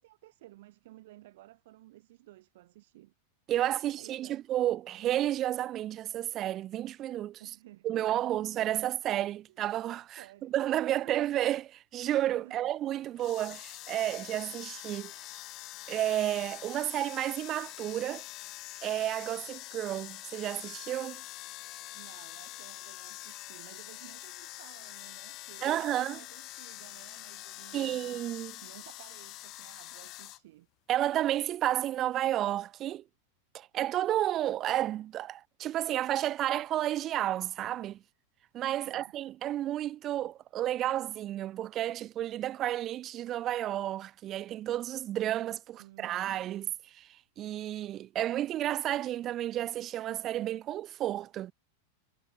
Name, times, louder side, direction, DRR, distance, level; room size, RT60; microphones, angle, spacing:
voice 1, 0.0-3.1 3.6-4.4 7.4-8.1 9.5-9.6 10.2-10.6 10.8-11.2 12.4-12.7 21.9-28.2 28.6-30.7 38.8-39.1 45.8-46.4, right 17 dB, 55° right, 2.4 m, -55 dB
voice 2, 3.5-7.4 7.8-15.1 15.9-18.3 18.8-21.2 25.6-26.2 27.7-28.6 30.9-33.0 33.5-38.0 38.5-51.5, right 12 dB, 30° right, 0.4 m, -31 dB
sound 1, 13.2-30.4, left 19 dB, 40° left, 3.3 m, -45 dB
figure-of-eight pair, 90°, 0 cm